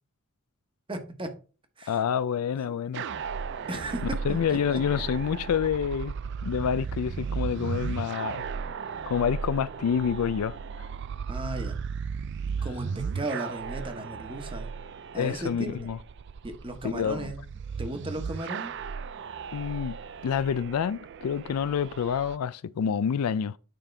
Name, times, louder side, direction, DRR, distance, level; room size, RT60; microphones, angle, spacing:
voice 1, 0.9-1.3 1.8-2.0 3.7-4.8 11.3-11.8 12.6-14.8 15.1-15.9 16.4-17.4 17.8-18.7, right 1 dB, 25° right, 1.1 m, -36 dB
voice 2, 1.9-3.1 4.2-6.1 6.4-8.5 9.1-10.6 15.2-16.0 16.8-17.3 19.5-20.0 20.2-23.6, left 7 dB, 80° left, 0.4 m, -28 dB
sound 1, 2.9-22.4, right 5 dB, 50° right, 0.4 m, -35 dB
9.3 x 5.2 x 3.3 m
head